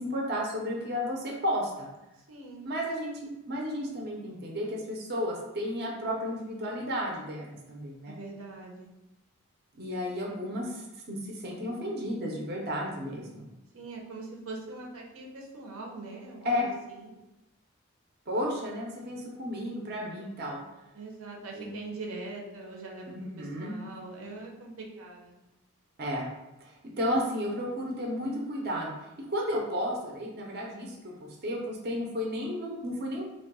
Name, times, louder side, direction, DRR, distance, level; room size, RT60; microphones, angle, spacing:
voice 1, 0.0-1.9 2.7-8.2 9.8-13.5 16.4-16.7 18.3-20.6 21.5-21.7 23.1-23.7 26.0-26.3 26.6-28.9 29.3-33.3, equal, 45° right, -1 dB, 0.6 m, -33 dB
voice 2, 2.3-2.7 8.1-8.9 13.7-17.1 20.9-25.4, right 3 dB, 85° right, 0 dB, 0.7 m, -42 dB
3.0 x 2.2 x 4.0 m, 0.96 s
head